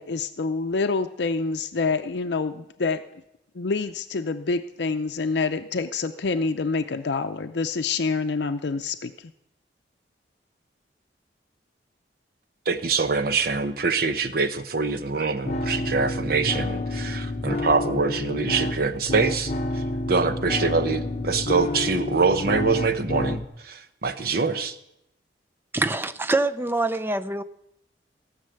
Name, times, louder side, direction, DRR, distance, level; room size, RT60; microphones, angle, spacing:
voice 1, 0.0-3.0 3.5-9.3, left 4 dB, 70° left, 0.6 m, -27 dB
voice 2, 12.7-19.8 20.1-24.7, right 4 dB, 55° right, 0.9 m, -24 dB
sound 1, 15.5-23.5, left 2 dB, 40° left, 0.9 m, -29 dB
voice 3, 25.7-27.4, right 2 dB, 15° right, 0.5 m, -25 dB
16.5 x 6.5 x 7.7 m
head